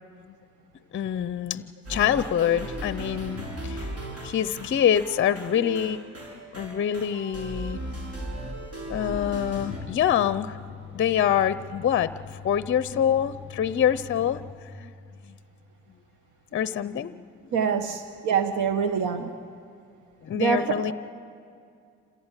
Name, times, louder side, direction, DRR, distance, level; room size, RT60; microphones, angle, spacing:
voice 1, 0.9-4.0 4.2-6.0 6.5-7.8 8.1-8.4 8.9-10.6 10.9-14.4 14.8-14.9 15.2-15.3 16.5-17.2 20.2-20.9, left 9 dB, 40° left, 14 dB, 0.6 m, -25 dB
sound 1, 1.8-9.8, right 1 dB, 55° right, 6.5 m, -36 dB
sound 2, 9.5-14.5, left 7 dB, 20° right, 7.8 m, -43 dB
voice 2, 17.5-19.3 20.3-20.9, right 6 dB, 80° right, 9 dB, 1.1 m, -25 dB
27.5 x 15.5 x 9.0 m, 2.4 s
cardioid pair, 90°, 30 cm